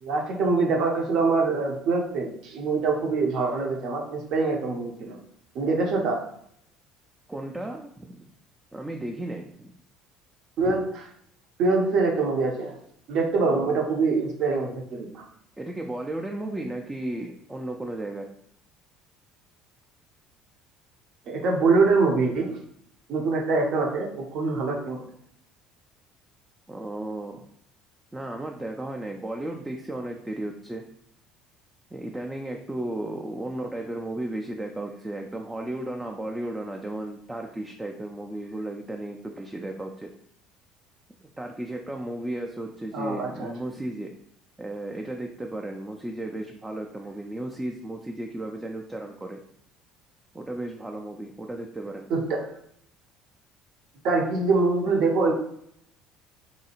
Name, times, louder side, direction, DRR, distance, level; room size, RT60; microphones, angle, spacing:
voice 1, 0.0-5.2 5.5-6.2 10.6-11.1 11.6-12.7 13.1-15.3 21.3-22.5 23.1-25.0 42.9-43.5 52.1-52.4 54.0-55.3, right 3 dB, 55° right, 1 dB, 0.7 m, -24 dB
voice 2, 7.3-8.3 8.7-9.7 13.4-13.7 15.6-18.3 26.7-27.5 28.1-30.8 31.9-40.1 41.4-44.1 44.6-49.4 50.3-52.1, right 1 dB, 10° right, 2 dB, 0.3 m, -34 dB
2.7 x 2.3 x 2.9 m, 0.70 s
hypercardioid pair, 60°, 0 cm